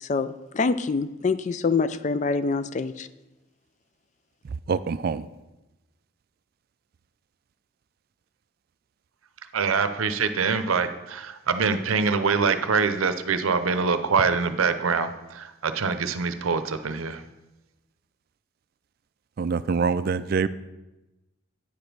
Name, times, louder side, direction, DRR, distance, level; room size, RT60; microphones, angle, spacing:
voice 1, 0.0-3.1, left 4 dB, 35° left, 13 dB, 0.3 m, -25 dB
voice 2, 4.7-5.3 19.4-20.5, right 5 dB, 45° right, 14 dB, 0.3 m, -25 dB
voice 3, 9.5-17.2, right 5 dB, 85° right, 10 dB, 0.6 m, -24 dB
9.4 x 5.1 x 6.0 m, 1.0 s
head